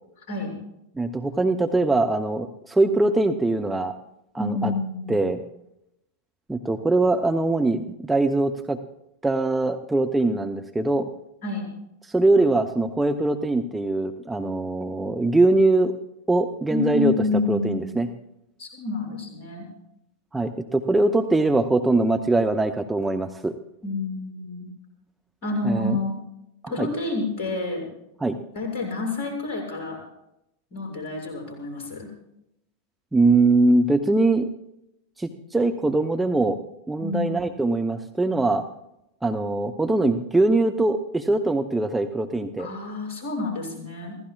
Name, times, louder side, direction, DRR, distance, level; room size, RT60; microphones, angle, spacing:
voice 1, 0.9-3.9 4.3-4.7 5.1-5.4 6.5-8.8 9.2-11.1 12.0-15.9 16.3-17.1 17.5-18.1 20.3-23.5 25.7-26.0 26.8-26.9 28.2-28.4 33.1-34.5 35.2-36.6 36.9-38.6 39.2-42.7, right 2 dB, 5° right, 5 dB, 0.8 m, -22 dB
voice 2, 4.4-5.3 11.4-11.7 16.7-17.9 18.6-19.7 23.8-24.7 25.4-26.2 26.7-27.9 28.5-30.0 30.7-32.1 37.0-37.4 42.6-44.2, left 3 dB, 45° left, 1 dB, 7.2 m, -28 dB
28.0 x 16.0 x 2.4 m, 0.82 s
figure-of-eight pair, 90°, 0 cm